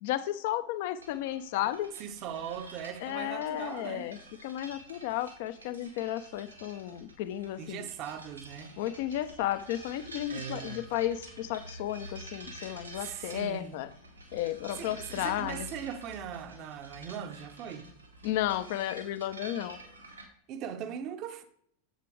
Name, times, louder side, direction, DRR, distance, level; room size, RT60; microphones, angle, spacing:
voice 1, 0.0-1.9 3.0-7.9 8.8-13.9 14.3-15.7 18.2-19.8, left 13 dB, 50° left, 0.6 m, -33 dB
sound 1, 1.0-20.2, right 1 dB, 85° right, 2.2 m, -49 dB
voice 2, 2.0-4.1 7.6-8.7 10.3-10.9 13.0-13.8 14.8-17.9 20.5-21.4, right 8 dB, 40° right, 0.8 m, -40 dB
10.0 x 7.6 x 3.3 m
figure-of-eight pair, 90°, 0 cm